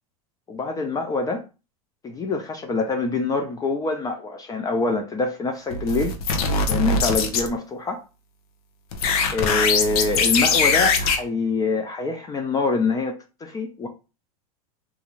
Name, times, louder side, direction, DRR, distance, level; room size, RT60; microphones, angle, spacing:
voice 1, 0.5-1.4 2.0-6.1 6.7-8.0 9.3-13.9, left 3 dB, 20° left, 0.3 m, -25 dB
sound 1, 5.7-7.5 8.9-11.2, left 4 dB, 70° left, 0.6 m, -21 dB
2.5 x 2.4 x 2.9 m
hypercardioid pair, 110°, 19 cm